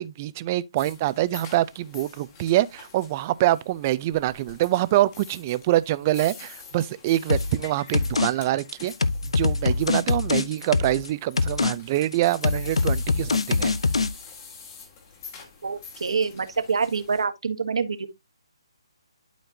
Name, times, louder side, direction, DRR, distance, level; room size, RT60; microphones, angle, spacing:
voice 1, 0.0-8.9 9.3-13.7, right 15 dB, 25° right, 0.4 m, -25 dB
sound 1, 0.8-17.2, left 5 dB, 25° left, 2.0 m, -46 dB
sound 2, 7.3-7.6 7.9-8.3 8.6-11.1 11.4-11.7 12.0-14.1, left 4 dB, 80° left, 0.7 m, -23 dB
voice 2, 15.6-18.1, right 5 dB, 70° right, 1.3 m, -26 dB
12.0 x 4.3 x 2.7 m
hypercardioid pair, 160°, 3 cm